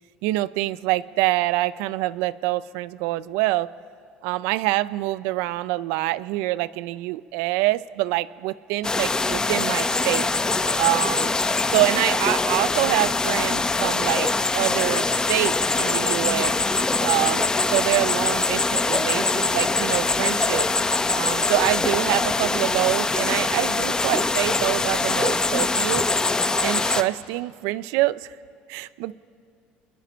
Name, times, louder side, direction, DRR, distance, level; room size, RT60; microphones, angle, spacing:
voice 1, 0.2-3.7 4.2-10.3 10.8-11.3 11.7-14.3 14.5-16.5 17.0-20.7 21.1-26.1 26.6-28.3 28.7-29.1, right 18 dB, 80° right, 17 dB, 0.5 m, -25 dB
sound 1, 8.8-27.0, left 3 dB, 20° left, 1.0 m, -23 dB
29.0 x 21.5 x 4.5 m, 2.2 s
supercardioid pair, 95°, 4 cm